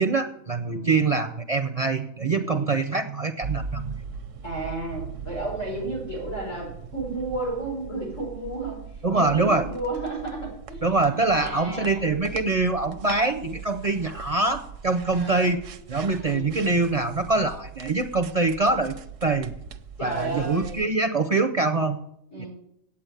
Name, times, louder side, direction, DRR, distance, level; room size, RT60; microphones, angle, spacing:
voice 1, 0.0-4.0 9.0-9.7 10.8-15.6 15.9-19.0 19.2-19.5 20.0-22.0 22.4-22.5, right 3 dB, 40° right, 7 dB, 0.5 m, -24 dB
voice 2, 0.6-1.0 2.4-2.8 4.4-12.1 15.1-15.6 16.1-16.6 20.0-20.8 22.3-22.5, right 2 dB, 90° left, -4 dB, 6.0 m, -33 dB
sound 1, 3.4-20.8, right 5 dB, 85° right, 1.1 m, -40 dB
8.6 x 8.6 x 8.9 m, 0.76 s
omnidirectional pair, 1.3 m